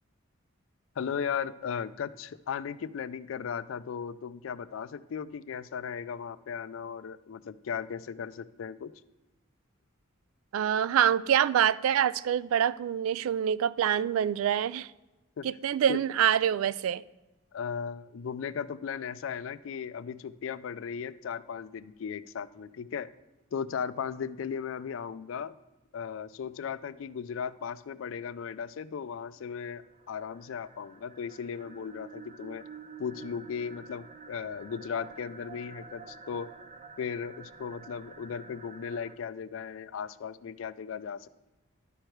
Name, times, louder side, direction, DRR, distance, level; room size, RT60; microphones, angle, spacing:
voice 1, 1.0-8.9 15.4-15.5 15.9-16.0 17.5-23.1 23.5-25.6 25.9-32.6 33.0-36.5 37.0-41.3, left 7 dB, 65° left, 0.4 m, -36 dB
voice 2, 10.5-14.9 15.4-17.0, right 9 dB, 85° right, 0.3 m, -26 dB
sound 1, 29.5-39.1, right 5 dB, 35° right, 0.6 m, -49 dB
11.5 x 4.7 x 4.6 m
head